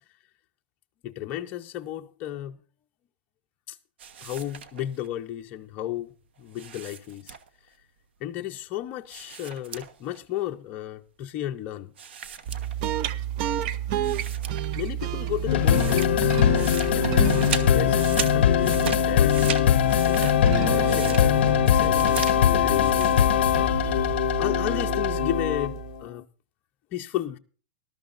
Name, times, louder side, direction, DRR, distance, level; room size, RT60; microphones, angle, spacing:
voice 1, 1.0-2.6 3.7-3.8 4.2-6.1 6.4-7.4 8.2-11.9 14.7-18.0 18.3-19.3 20.0-26.2 26.9-27.4, left 13 dB, 30° left, 0.8 m, -34 dB
sound 1, 4.0-5.1 6.5-7.7 9.1-10.2 10.5-10.6 12.0-13.1 13.6-13.7 14.0-14.9 15.1-23.2, right 7 dB, 85° right, 1.3 m, -37 dB
sound 2, 12.4-26.0, right 10 dB, 45° right, 0.7 m, -30 dB
sound 3, 15.5-25.9, left 11 dB, 75° left, 0.6 m, -22 dB
19.5 x 12.5 x 2.6 m
supercardioid pair, 150°, 6 cm